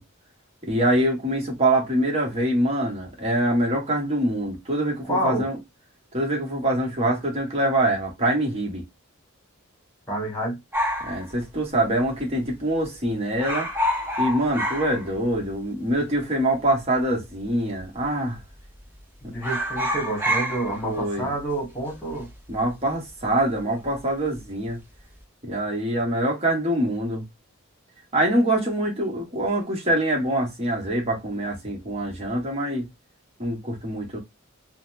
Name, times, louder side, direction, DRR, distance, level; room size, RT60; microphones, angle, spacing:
voice 1, 0.6-5.6 6.1-8.8 11.0-13.7 14.2-18.4 19.2-19.3 20.8-21.3 22.5-24.8 25.4-27.2 28.1-32.9 33.4-34.2, right 1 dB, 30° right, 1.2 m, -24 dB
voice 2, 5.1-5.5 10.1-10.6 19.2-22.3, right 1 dB, 10° left, 1.6 m, -28 dB
sound 1, 10.7-12.2 12.5-12.6 12.8-13.1 13.3-15.6 15.9-16.0 16.8-17.4 17.8-18.0 18.3-19.0 19.3-23.9 24.2-24.7, equal, 10° right, 0.8 m, -29 dB
4.0 x 2.1 x 2.5 m
head